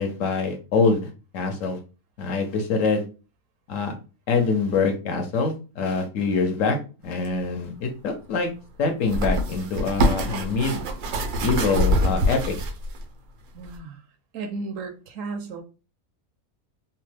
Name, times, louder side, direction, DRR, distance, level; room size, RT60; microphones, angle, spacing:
voice 1, 0.0-1.8 2.2-3.0 3.7-3.9 4.3-6.8 7.0-8.5 8.8-10.8 11.4-12.5, left 4 dB, 70° left, 4 dB, 1.0 m, -24 dB
sound 1, 7.2-7.3 9.0-13.0 13.6-13.8, equal, 90° right, 1.2 m, -24 dB
voice 2, 13.5-15.6, right 3 dB, 70° right, 6 dB, 0.9 m, -35 dB
2.9 x 2.1 x 3.2 m, 0.33 s
omnidirectional pair, 1.5 m